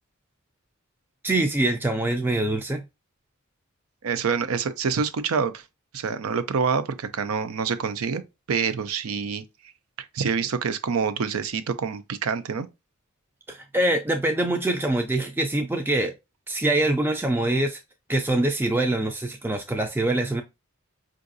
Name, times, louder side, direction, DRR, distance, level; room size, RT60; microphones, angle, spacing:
voice 1, 1.2-2.8 13.5-16.1 16.5-17.8 18.1-20.4, right 2 dB, 10° right, 0.3 m, -24 dB
voice 2, 4.0-5.6 5.9-8.2 8.5-9.4 10.1-12.7, right 6 dB, 90° right, 0.5 m, -26 dB
4.7 x 2.5 x 2.5 m
head